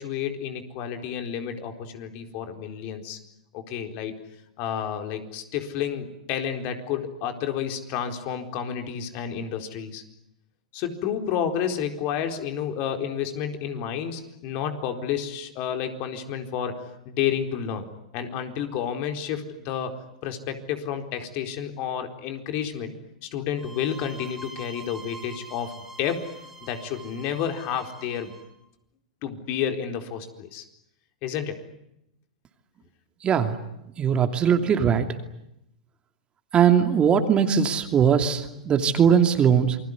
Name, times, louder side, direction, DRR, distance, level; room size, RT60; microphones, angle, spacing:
voice 1, 0.0-3.2 3.5-4.2 4.6-10.0 10.7-17.9 18.1-19.9 20.2-22.9 23.2-25.7 26.0-26.3 26.6-28.3 29.2-30.6 31.2-31.6, left 8 dB, 45° left, 6 dB, 4.2 m, -30 dB
sound 1, 23.6-28.5, right 1 dB, 10° right, 5.6 m, -45 dB
voice 2, 33.2-33.5 34.0-35.1 36.5-39.8, right 7 dB, 25° right, 7 dB, 2.7 m, -20 dB
28.0 x 21.5 x 9.8 m, 0.83 s
hypercardioid pair, 115°, 4 cm